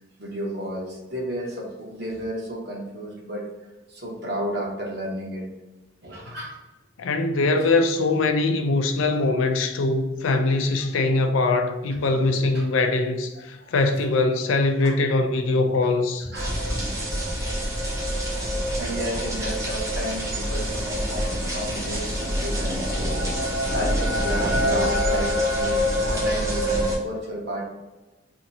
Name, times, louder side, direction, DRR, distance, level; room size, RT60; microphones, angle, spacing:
voice 1, 0.2-5.4 6.0-6.6 12.0-12.2 12.5-12.6 13.3-13.7 14.8-14.9 16.2-16.6 18.4-23.1 23.4-27.6, right 1 dB, 55° right, 1.0 m, -32 dB
voice 2, 7.0-16.3, left 3 dB, 80° left, 0.4 m, -22 dB
sound 1, 16.3-27.0, equal, 15° right, 0.6 m, -25 dB
2.8 x 2.7 x 4.0 m
head